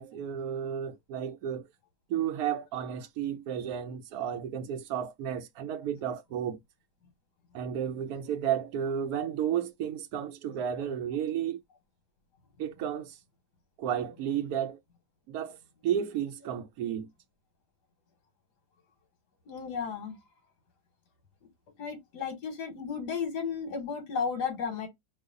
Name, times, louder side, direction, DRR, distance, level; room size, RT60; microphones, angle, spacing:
voice 1, 0.0-1.7 2.1-6.6 7.5-11.6 12.6-13.2 13.8-14.8 15.3-15.6 15.8-17.1, right 9 dB, 70° right, 1.0 m, -32 dB
voice 2, 19.5-20.2 21.8-24.9, left 6 dB, 85° left, 1.6 m, -34 dB
3.1 x 2.3 x 3.7 m
omnidirectional pair, 1.7 m